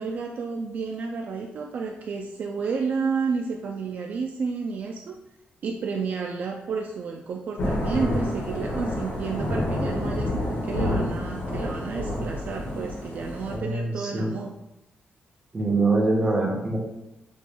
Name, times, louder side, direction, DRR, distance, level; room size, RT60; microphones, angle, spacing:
voice 1, 0.0-5.2 5.6-14.5, right 5 dB, 55° right, 2 dB, 0.3 m, -31 dB
Thunder / Rain, 7.6-13.6, left 1 dB, 60° left, 1.6 m, -28 dB
voice 2, 13.5-14.3 15.5-16.8, right 2 dB, 20° right, -1 dB, 1.0 m, -24 dB
7.0 x 3.2 x 2.2 m, 0.92 s
wide cardioid pair, 150°, 3 cm